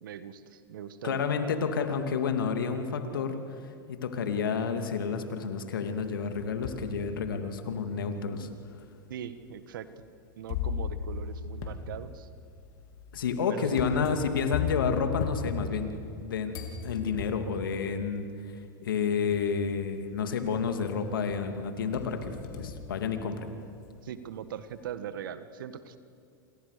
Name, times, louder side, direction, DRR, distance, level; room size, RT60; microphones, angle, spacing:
voice 1, 0.0-1.2 9.1-9.9 10.4-12.3 13.5-13.8 24.0-26.0, right 9 dB, 75° right, 12 dB, 1.6 m, -40 dB
voice 2, 1.0-3.4 3.9-8.5 13.1-15.9 16.2-18.3 18.8-23.5, left 6 dB, 80° left, 7 dB, 2.7 m, -30 dB
sound 1, 6.0-6.9 7.5-7.6 8.5-8.6 10.5-16.2 16.5-17.5 18.7-18.8 19.3-19.7 20.1-20.9 21.3-23.7, left 6 dB, 65° left, 3.7 m, -37 dB
28.5 x 27.5 x 6.8 m, 2.4 s
hypercardioid pair, 95°, 11 cm